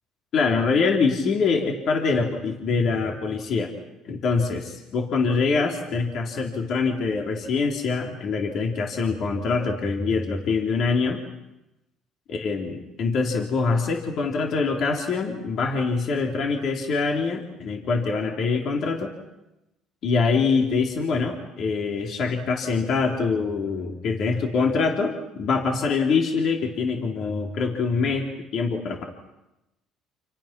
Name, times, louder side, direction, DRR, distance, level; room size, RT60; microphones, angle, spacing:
voice 1, 0.3-3.7 4.1-11.2 12.3-19.1 20.0-28.3 28.5-29.0, left 4 dB, 60° left, 2 dB, 3.6 m, -24 dB
29.5 x 28.0 x 6.1 m, 0.94 s
supercardioid pair, 85°, 0 cm